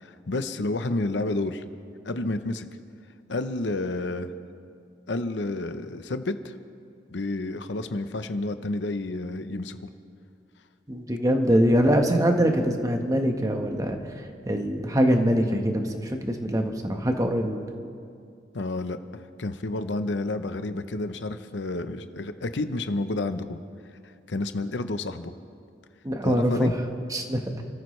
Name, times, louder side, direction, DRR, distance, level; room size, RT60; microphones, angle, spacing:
voice 1, 0.0-1.6 2.0-2.7 3.3-4.3 5.1-6.6 7.1-9.8 18.5-23.6 24.3-25.3 26.2-26.7, left 2 dB, 85° left, 10 dB, 0.8 m, -30 dB
voice 2, 10.9-14.1 14.5-17.7 26.0-26.7 27.1-27.4, equal, 20° right, 4 dB, 1.2 m, -23 dB
30.0 x 14.0 x 3.2 m, 2.3 s
head